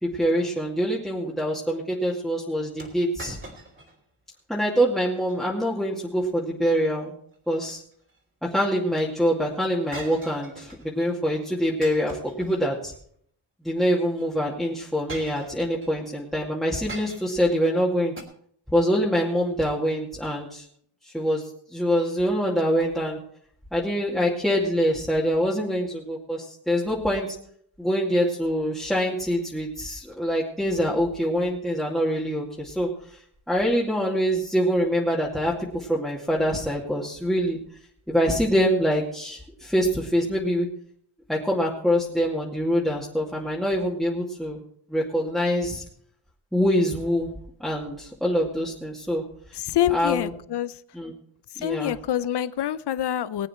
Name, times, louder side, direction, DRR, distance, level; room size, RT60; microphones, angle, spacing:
voice 1, 0.0-3.4 4.5-7.1 7.5-7.8 8.5-12.9 13.6-18.1 18.7-20.7 21.0-21.4 21.7-23.2 23.7-27.3 27.8-33.2 33.5-37.6 38.1-40.7 41.3-44.6 44.9-45.8 46.5-47.3 47.6-49.2 49.9-50.3 50.9-51.1 51.6-52.0, equal, ahead, -5 dB, 2.4 m, -25 dB
sound 1, 2.8-4.0 4.3-4.4 5.1-5.4 7.3-8.2 9.9-10.9 11.8-13.0 14.1-14.3 15.1-15.9 16.9-17.5 18.2-18.3, right 1 dB, 25° right, 3.1 m, -42 dB
voice 2, 49.5-50.7 51.6-53.5, left 11 dB, 55° left, 16 dB, 0.7 m, -26 dB
20.0 x 9.0 x 4.4 m, 0.62 s
cardioid pair, 110°, 48 cm